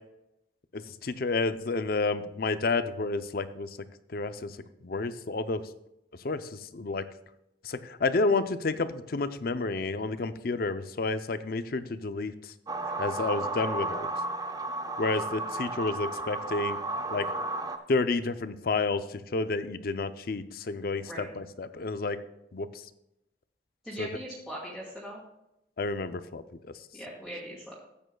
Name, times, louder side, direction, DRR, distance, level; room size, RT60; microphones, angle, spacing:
voice 1, 0.7-3.7 4.1-4.6 4.8-5.6 6.2-7.0 7.6-12.3 13.0-14.1 15.0-16.8 17.1-17.3 17.9-22.2 22.5-22.7 24.0-24.1 25.8-26.4, left 3 dB, 55° left, 12 dB, 0.5 m, -30 dB
sound 1, 12.7-17.8, right 2 dB, 20° right, 0.6 m, -33 dB
voice 2, 21.0-21.4 23.8-25.2 26.9-27.8, equal, 5° right, -9 dB, 2.2 m, -40 dB
14.0 x 8.7 x 2.3 m, 0.85 s
head